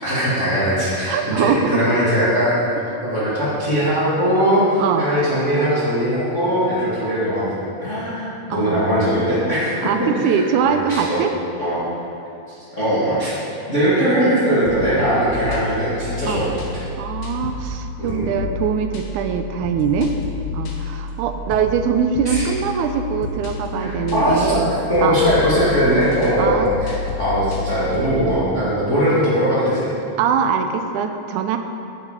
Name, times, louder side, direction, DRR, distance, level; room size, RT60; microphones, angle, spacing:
voice 1, 0.0-2.6 3.0-11.2 11.6-11.8 12.5-13.3 13.7-16.8 18.0-18.3 22.2-22.5 23.7-24.6 24.9-29.9, equal, 25° left, -11 dB, 2.5 m, -20 dB
voice 2, 1.1-1.8 4.8-5.1 8.5-8.8 9.8-11.3 16.3-16.5 17.0-20.1 20.5-24.7 25.0-25.4 26.4-26.7 30.2-31.6, right 7 dB, 85° right, 7 dB, 2.1 m, -22 dB
sound 1, 14.7-28.4, left 4 dB, 70° left, 2.6 m, -30 dB
13.5 x 8.2 x 5.2 m, 2.7 s
omnidirectional pair, 3.5 m